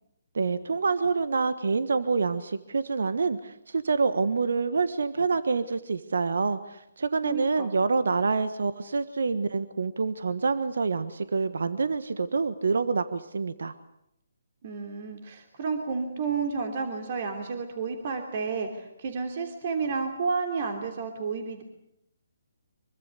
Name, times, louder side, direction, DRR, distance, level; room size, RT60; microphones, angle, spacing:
voice 1, 0.3-13.7, right 4 dB, 70° right, 13 dB, 1.4 m, -27 dB
voice 2, 7.2-7.7 14.6-21.6, right 5 dB, 45° right, 5 dB, 3.1 m, -31 dB
25.0 x 23.0 x 8.3 m, 0.78 s
figure-of-eight pair, 145°, 0 cm